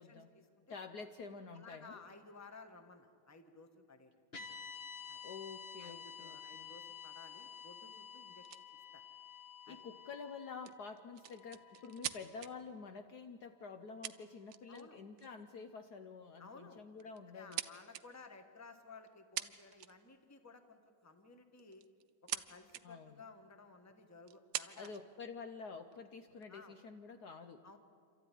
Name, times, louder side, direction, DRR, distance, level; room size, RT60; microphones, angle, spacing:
voice 1, 0.0-0.6 1.5-4.1 5.1-5.2 5.8-8.5 8.9-9.0 9.7-9.8 14.7-15.0 16.4-16.8 17.3-21.8 22.2-24.9 26.5-26.8 27.6-27.8, left 4 dB, 10° left, 6 dB, 1.1 m, -56 dB
voice 2, 0.7-2.0 5.2-6.7 9.7-17.6 22.8-23.2 24.8-27.6, left 5 dB, 60° left, 7 dB, 1.2 m, -49 dB
sound 1, 4.3-12.6, left 7 dB, 35° left, 1.4 m, -51 dB
sound 2, 8.4-8.6 10.6-12.5 13.6-13.7 14.0-14.8 15.2-15.4 16.4-16.6 17.0-18.0 19.1-19.2 19.4-20.1 21.6-22.4 22.7-22.8 23.5-23.6 24.3-25.0 25.7-26.4, right 12 dB, 70° right, 1.4 m, -43 dB
27.5 x 14.0 x 10.0 m, 2.2 s
omnidirectional pair, 2.3 m